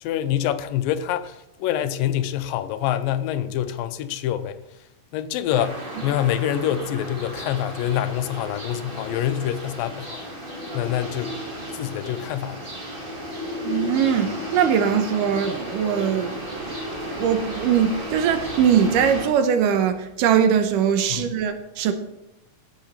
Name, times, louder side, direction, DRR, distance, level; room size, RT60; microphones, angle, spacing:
voice 1, 0.0-4.6 5.1-10.2 10.7-11.4 11.7-12.6 21.1-21.3, left 11 dB, 85° left, 2.4 m, -26 dB
sound 1, 5.5-19.3, equal, 20° right, 1.9 m, -33 dB
voice 2, 13.6-16.8 17.1-21.9, right 8 dB, 80° right, 2.3 m, -21 dB
17.0 x 6.3 x 4.4 m
omnidirectional pair, 4.0 m